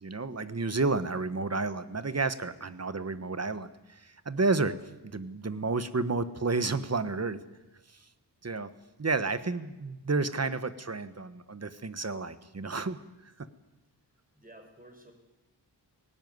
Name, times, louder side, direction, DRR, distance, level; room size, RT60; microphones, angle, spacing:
voice 1, 0.0-4.7 5.0-7.4 8.4-8.7 9.0-13.0 13.4-13.5, right 3 dB, 35° right, 13 dB, 1.2 m, -31 dB
voice 2, 9.1-9.6 14.3-15.1, right 1 dB, 20° right, 4 dB, 5.4 m, -53 dB
18.5 x 18.0 x 9.5 m, 1.1 s
wide cardioid pair, 90°, 42 cm